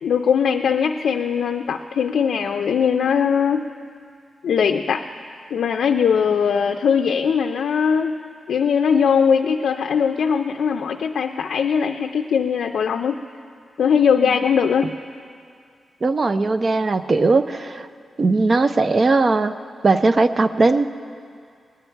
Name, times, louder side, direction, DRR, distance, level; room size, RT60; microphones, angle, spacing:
voice 1, 0.0-3.6 4.4-5.0 5.5-8.1 8.5-13.2 13.8-14.9, left 7 dB, 80° left, 4 dB, 0.4 m, -20 dB
voice 2, 16.0-17.9 18.2-19.5 19.8-20.9, right 3 dB, 30° right, 11 dB, 0.4 m, -18 dB
18.5 x 9.9 x 4.5 m, 2.3 s
wide cardioid pair, 170°, 0 cm